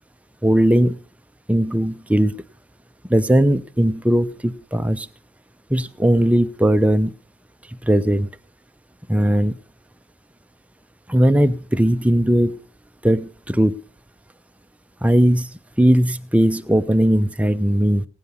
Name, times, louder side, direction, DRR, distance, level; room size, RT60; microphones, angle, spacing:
voice 1, 0.4-1.0 1.5-2.3 3.1-5.1 5.7-7.1 7.8-8.3 9.1-9.5 11.1-12.6 13.0-13.8 15.0-15.5 15.8-18.0, right 1 dB, 5° right, 10 dB, 0.6 m, -18 dB
18.5 x 9.6 x 5.3 m, 0.36 s
head